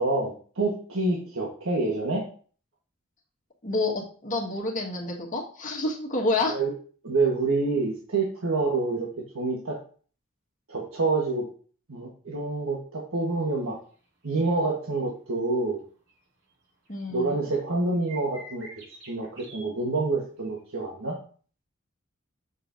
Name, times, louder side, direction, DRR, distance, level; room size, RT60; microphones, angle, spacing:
voice 1, 0.0-2.2 6.5-6.7 7.0-9.1 9.3-9.8 10.7-11.4 11.9-13.7 14.2-15.8 17.1-18.7 19.1-21.1, right 3 dB, 85° right, -2 dB, 1.4 m, -27 dB
voice 2, 3.6-6.6 16.9-17.4, left 2 dB, 40° left, -1 dB, 1.7 m, -28 dB
sound 1, 14.2-14.4 14.9-15.0 16.1-16.2 16.5-16.6 16.9-17.3 18.1-19.7 20.4-20.6, right 2 dB, 60° right, 2.5 m, -46 dB
7.1 x 6.9 x 2.7 m, 0.42 s
head